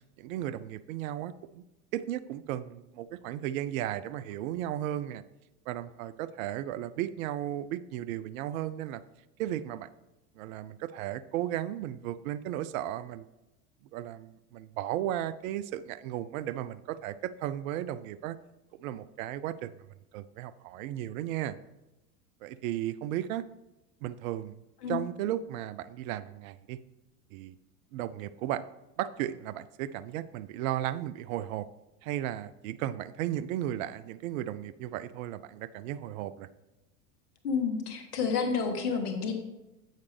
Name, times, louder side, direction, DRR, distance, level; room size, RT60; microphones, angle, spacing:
voice 1, 0.2-1.6 1.9-5.2 5.7-9.0 9.4-9.9 10.4-13.2 13.9-18.4 18.8-19.7 20.1-21.6 22.4-23.4 24.0-24.6 24.9-26.8 27.3-27.5 27.9-28.6 29.0-31.7 32.0-36.5, right 12 dB, 60° right, 15 dB, 0.5 m, -35 dB
voice 2, 37.4-39.3, left 5 dB, 75° left, 5 dB, 1.4 m, -30 dB
8.2 x 6.5 x 3.3 m, 0.98 s
hypercardioid pair, 85°, 47 cm